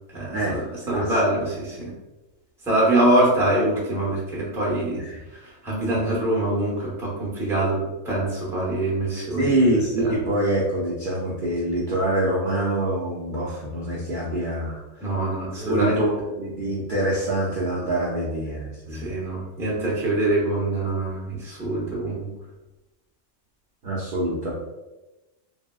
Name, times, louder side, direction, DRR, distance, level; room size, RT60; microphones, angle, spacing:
voice 1, 0.1-0.6 0.9-1.9 2.6-5.0 5.3-9.5 10.0-10.1 15.0-16.0 18.9-22.3, right 1 dB, 5° right, -6 dB, 0.6 m, -24 dB
voice 2, 9.4-15.0 15.4-19.1 23.8-24.5, right 1 dB, 55° right, -6 dB, 0.6 m, -25 dB
3.4 x 2.0 x 2.3 m, 1.1 s
omnidirectional pair, 1.3 m